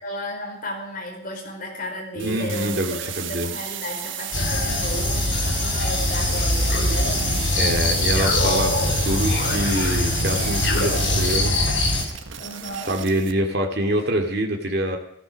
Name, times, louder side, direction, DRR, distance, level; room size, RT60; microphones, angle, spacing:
voice 1, 0.0-7.7 12.4-13.0, equal, 45° left, 1 dB, 4.6 m, -34 dB
voice 2, 2.1-3.5 7.6-8.7 9.0-11.5 12.9-15.0, right 1 dB, 55° right, 2 dB, 2.4 m, -25 dB
sound 1, 2.2-13.3, right 10 dB, 85° right, 1.3 m, -33 dB
sound 2, 4.3-12.0, left 2 dB, 80° left, 5.4 m, -23 dB
sound 3, 6.7-7.7 8.1-11.8, left 2 dB, 65° left, 2.8 m, -30 dB
15.0 x 15.0 x 6.5 m, 0.73 s
head